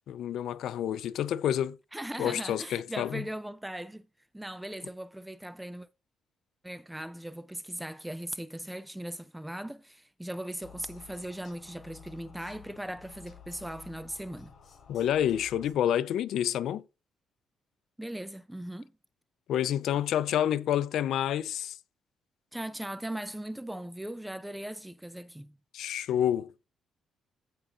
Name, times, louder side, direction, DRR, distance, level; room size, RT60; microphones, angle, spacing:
voice 1, 0.1-1.8 2.2-3.2 14.9-16.8 19.5-21.7 25.7-26.5, left 10 dB, 75° left, 0.5 m, -28 dB
voice 2, 1.9-4.1 4.3-5.9 6.6-14.5 18.0-18.9 22.5-25.6, right 1 dB, 5° right, 0.5 m, -39 dB
sound 1, 10.6-15.7, left 8 dB, 50° left, 4.7 m, -53 dB
15.5 x 5.4 x 2.5 m
cardioid pair, 90°, 0 cm